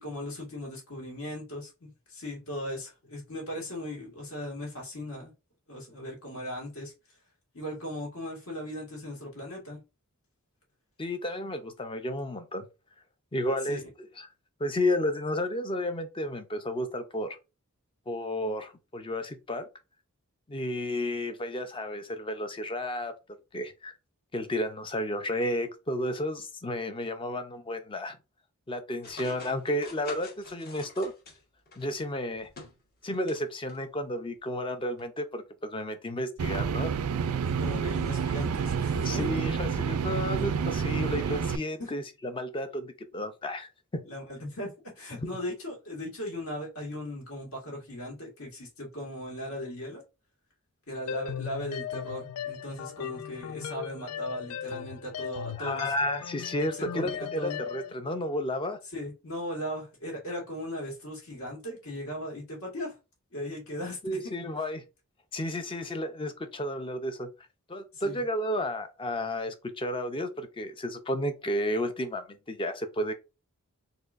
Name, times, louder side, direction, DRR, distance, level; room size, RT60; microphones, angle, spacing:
voice 1, 0.0-5.3 5.7-6.9 7.5-9.8 13.7-13.8 37.3-39.2 41.8-41.9 44.1-50.0 50.9-55.9 56.6-57.6 58.9-62.9 63.3-64.2 67.9-68.2, left 1 dB, 70° left, 1.9 m, -38 dB
voice 2, 11.0-12.7 13.3-13.8 14.2-14.3 14.6-17.4 18.1-19.7 20.5-23.1 23.5-23.9 24.3-28.2 28.7-31.1 31.8-32.5 33.0-36.9 39.0-44.0 45.2-45.3 55.6-58.8 64.0-64.8 65.3-67.3 67.7-73.1, left 1 dB, 25° left, 0.5 m, -32 dB
sound 1, 29.0-31.9 32.3-33.4 33.7-33.8 35.0-35.1, left 3 dB, 45° left, 1.1 m, -46 dB
sound 2, 36.4-41.6, right 6 dB, 85° right, 0.4 m, -29 dB
sound 3, 51.1-57.9, left 8 dB, 85° left, 0.4 m, -38 dB
4.2 x 2.9 x 2.5 m
head